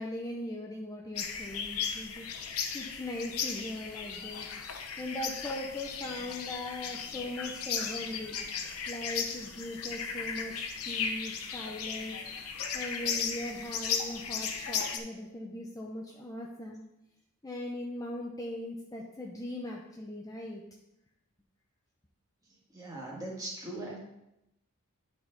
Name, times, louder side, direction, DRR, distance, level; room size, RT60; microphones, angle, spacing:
voice 1, 0.0-4.5 5.0-8.4 8.9-12.2 12.7-16.8 17.4-20.6, left 1 dB, 15° left, -1 dB, 0.6 m, -39 dB
sound 1, 1.1-15.0, left 6 dB, 85° left, 0.8 m, -36 dB
voice 2, 22.7-24.0, right 1 dB, 15° right, -3 dB, 1.7 m, -40 dB
10.5 x 4.4 x 3.9 m, 0.88 s
head